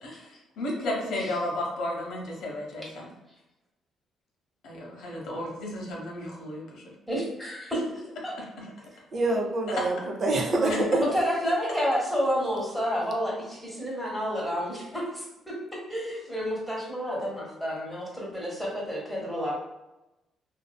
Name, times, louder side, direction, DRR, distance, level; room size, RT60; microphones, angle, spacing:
voice 1, 0.0-3.1 4.6-6.8 8.6-8.7 9.7-9.8 10.7-10.8, left 1 dB, 80° left, -2 dB, 0.7 m, -33 dB
voice 2, 7.1-7.8 8.2-8.3 10.5-15.5 15.9-19.5, equal, ahead, -4 dB, 1.0 m, -30 dB
voice 3, 9.1-11.0, right 2 dB, 50° right, 1 dB, 0.4 m, -26 dB
2.5 x 2.3 x 2.2 m, 0.97 s
cardioid pair, 90°, 0 cm